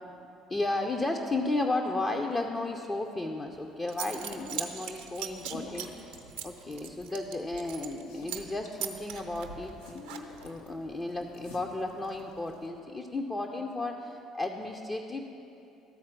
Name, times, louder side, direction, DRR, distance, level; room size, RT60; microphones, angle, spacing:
voice 1, 0.5-10.0 10.4-15.3, left 2 dB, 25° left, 2 dB, 0.6 m, -34 dB
Zipper (clothing) / Coin (dropping), 3.5-3.6 3.9-8.0 8.3-8.5 8.8-10.6, right 10 dB, 70° right, 0.6 m, -39 dB
sound 1, 4.1-12.7, left 3 dB, 75° left, 0.9 m, -49 dB
13.0 x 4.3 x 6.2 m, 2.8 s
figure-of-eight pair, 55°, 0 cm